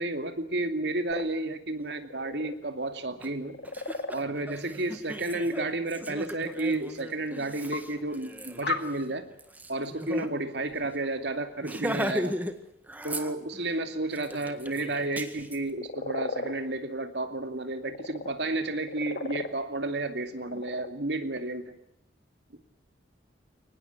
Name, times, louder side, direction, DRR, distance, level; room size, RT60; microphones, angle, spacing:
voice 1, 0.0-3.5 4.1-9.3 9.7-12.4 13.0-21.7, right 2 dB, 70° right, 8 dB, 2.7 m, -32 dB
sound 1, 1.1-1.3 1.8-2.6 3.4-4.2 6.3-6.4 7.7-7.8 8.6-8.8 15.7-16.5 17.7-18.3 18.7-19.5 20.3-20.9, left 3 dB, 65° left, 2.5 m, -34 dB
Laughter, 3.2-3.3 3.6-10.3 10.6-10.7 11.0-11.2 11.6-12.6 12.9-13.7 14.1-15.6, right 1 dB, 10° right, 1.7 m, -37 dB
24.0 x 20.0 x 9.6 m, 0.72 s
head